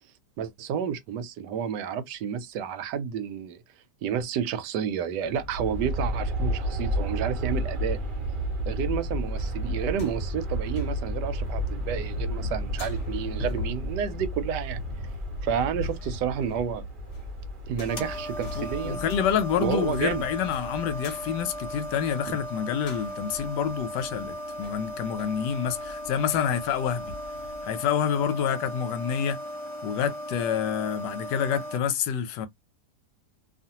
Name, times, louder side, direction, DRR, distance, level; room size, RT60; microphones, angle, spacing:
voice 1, 0.4-3.6 4.0-8.0 8.7-14.8 15.4-16.8 17.7-19.0 19.6-20.2 22.3-22.4, right 8 dB, 80° right, 1.2 m, -30 dB
Aircraft, 5.3-21.3, equal, 45° right, 0.7 m, -33 dB
sound 1, 9.2-27.6 28.0-28.1, left 1 dB, 50° left, 1.0 m, -39 dB
sound 2, 17.9-31.8, equal, 20° left, 0.9 m, -37 dB
voice 2, 18.6-27.1 27.6-29.4 29.8-32.5, left 8 dB, 85° left, 1.3 m, -28 dB
2.7 x 2.4 x 2.8 m
omnidirectional pair, 1.8 m